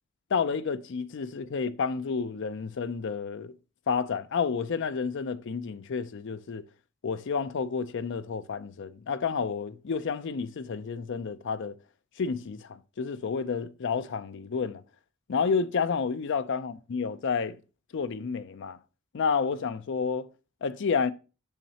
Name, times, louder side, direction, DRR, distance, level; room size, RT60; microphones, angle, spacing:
voice 1, 0.3-3.5 3.9-6.6 7.0-11.7 12.2-14.8 15.3-17.6 17.9-18.8 19.1-20.3 20.6-21.1, left 5 dB, 55° left, 0.4 m, -30 dB
7.1 x 6.4 x 2.8 m
head